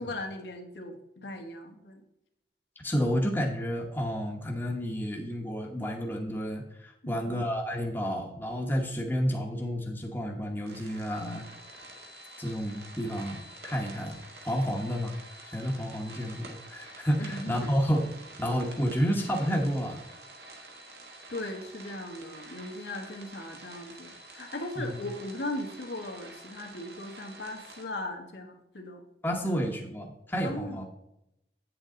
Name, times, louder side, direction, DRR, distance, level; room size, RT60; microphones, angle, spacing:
voice 1, 0.0-2.0 7.0-7.4 17.2-17.7 21.3-29.1 29.4-29.6 30.4-30.8, left 1 dB, 85° left, 3 dB, 1.3 m, -38 dB
voice 2, 2.8-11.4 12.4-14.2 14.4-15.2 15.5-18.1 18.4-20.0 24.8-24.9 29.2-30.9, equal, 10° left, 0 dB, 1.0 m, -30 dB
sound 1, 10.7-27.8, right 2 dB, 70° right, 1.9 m, -48 dB
8.7 x 7.6 x 3.8 m, 0.86 s
head